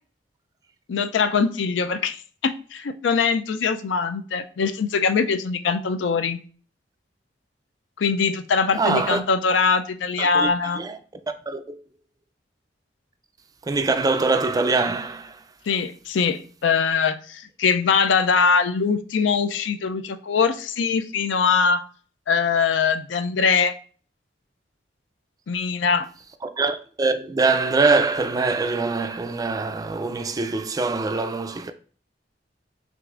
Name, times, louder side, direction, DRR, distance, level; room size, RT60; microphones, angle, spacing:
voice 1, 0.9-6.4 8.0-10.8 15.7-21.8 22.3-23.7 25.5-26.1, left 5 dB, 80° left, 0.4 m, -22 dB
voice 2, 8.8-9.2 10.2-11.0 11.5-11.8 13.7-15.4 26.4-31.7, right 3 dB, 20° right, 0.3 m, -23 dB
6.1 x 2.5 x 2.4 m
head